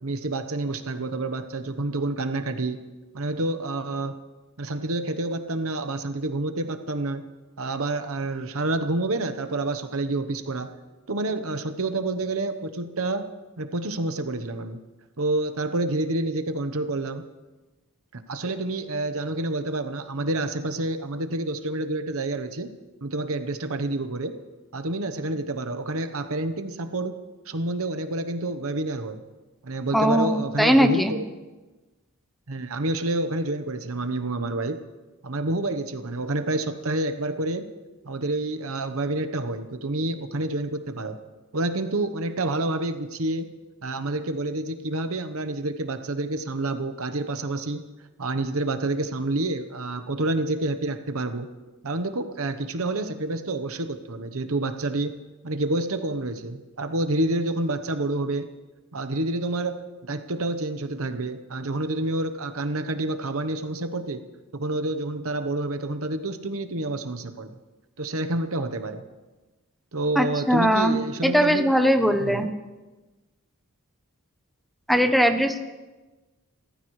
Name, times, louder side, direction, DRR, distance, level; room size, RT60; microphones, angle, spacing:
voice 1, 0.0-2.8 3.1-4.2 4.6-7.2 7.6-10.7 11.1-13.3 13.6-14.8 15.2-17.2 18.1-22.7 23.0-24.3 24.7-27.2 27.5-29.2 29.6-31.3 32.5-34.8 35.2-37.7 38.0-41.2 41.5-43.5 43.8-47.8 48.2-51.5 51.8-55.1 55.4-58.5 58.9-64.2 64.5-67.5 68.0-69.0 69.9-71.7 72.2-72.5, right 2 dB, 65° right, 9 dB, 1.1 m, -28 dB
voice 2, 29.9-31.1 70.2-72.5 74.9-75.6, equal, ahead, 7 dB, 0.8 m, -20 dB
28.5 x 14.5 x 3.2 m, 1.2 s
head